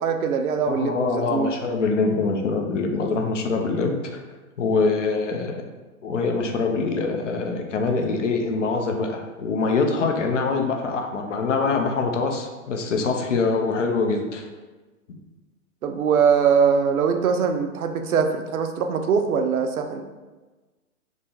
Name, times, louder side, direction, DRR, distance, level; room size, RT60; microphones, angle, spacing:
voice 1, 0.0-1.6 15.8-20.0, right 6 dB, 70° right, 5 dB, 0.5 m, -22 dB
voice 2, 0.7-4.2 4.6-5.6 6.0-14.5, left 4 dB, 55° left, 3 dB, 0.5 m, -24 dB
3.0 x 2.6 x 3.7 m, 1.2 s
hypercardioid pair, 175°, 44 cm